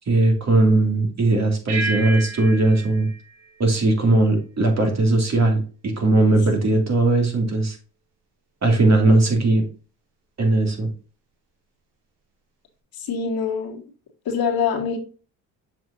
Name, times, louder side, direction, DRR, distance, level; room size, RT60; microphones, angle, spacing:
voice 1, 0.1-3.1 3.6-7.8 8.6-9.6 10.4-10.9, right 2 dB, 40° right, 2 dB, 2.6 m, -19 dB
sound 1, 1.7-4.4, right 2 dB, 70° right, 2.5 m, -32 dB
voice 2, 13.0-13.8 14.3-15.0, left 6 dB, 60° left, 1 dB, 2.0 m, -24 dB
7.2 x 5.7 x 2.7 m, 0.37 s
hypercardioid pair, 60°, 41 cm